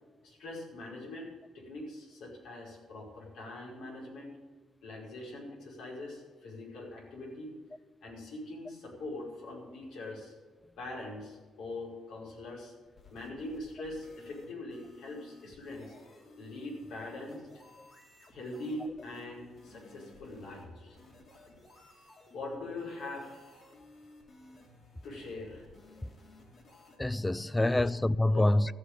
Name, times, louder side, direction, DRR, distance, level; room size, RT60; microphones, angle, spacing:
voice 1, 0.2-4.3 4.8-7.6 8.0-10.3 10.8-12.7 13.1-15.9 16.4-17.5 18.3-21.0 22.3-23.5 25.0-25.7 27.7-27.8 28.3-28.4, left 2 dB, 80° left, 5.0 m, -42 dB
sound 1, 12.9-27.0, left 2 dB, 50° left, 3.1 m, -57 dB
voice 2, 27.0-28.7, left 1 dB, 10° left, 0.3 m, -27 dB
14.5 x 6.3 x 9.0 m
cardioid pair, 90°, 0 cm